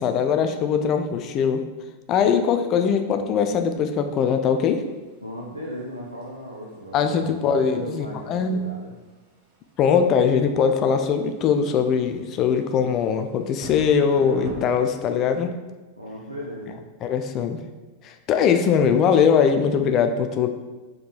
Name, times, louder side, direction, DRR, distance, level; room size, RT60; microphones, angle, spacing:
voice 1, 0.0-1.6 2.1-4.8 6.9-8.6 9.8-15.5 17.0-17.6 18.0-20.5, left 7 dB, 35° left, 7 dB, 0.3 m, -21 dB
sound 1, 4.8-14.6, right 3 dB, 50° right, 1.0 m, -45 dB
voice 2, 5.2-9.0 16.0-16.8, equal, 85° right, -4 dB, 0.6 m, -36 dB
4.4 x 3.7 x 2.3 m, 1.2 s
figure-of-eight pair, 90°, 0 cm